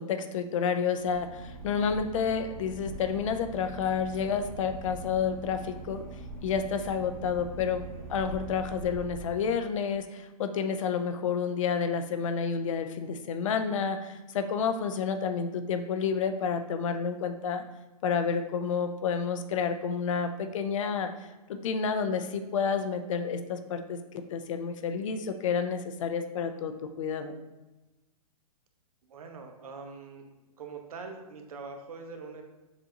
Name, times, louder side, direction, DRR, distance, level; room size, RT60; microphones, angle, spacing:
voice 1, 0.0-6.0 6.4-7.8 8.1-17.6 18.0-21.1 21.5-24.0 24.3-27.3, left 6 dB, 55° left, 8 dB, 0.5 m, -30 dB
Boat Water vehicle / Engine, 1.0-9.9, right 2 dB, 10° left, 1.0 m, -43 dB
voice 2, 29.1-30.2 30.6-32.4, right 4 dB, 70° right, 4 dB, 0.8 m, -43 dB
6.9 x 2.6 x 2.8 m, 1.1 s
hypercardioid pair, 145°, 19 cm